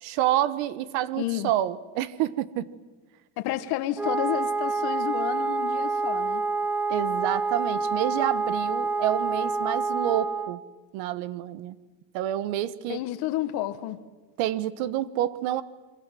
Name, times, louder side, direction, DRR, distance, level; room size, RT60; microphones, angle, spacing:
voice 1, 0.0-2.7 6.9-10.6 10.9-11.8 12.1-13.0 14.4-15.6, right 13 dB, 75° right, 1.4 m, -28 dB
voice 2, 1.2-1.5 3.4-6.4 12.9-14.0, left 14 dB, 55° left, 1.4 m, -30 dB
Wind instrument woodwind instrument, 4.0-10.6, right 4 dB, 5° right, 0.9 m, -27 dB
27.5 x 23.0 x 7.7 m
cardioid pair, 160°, 45 cm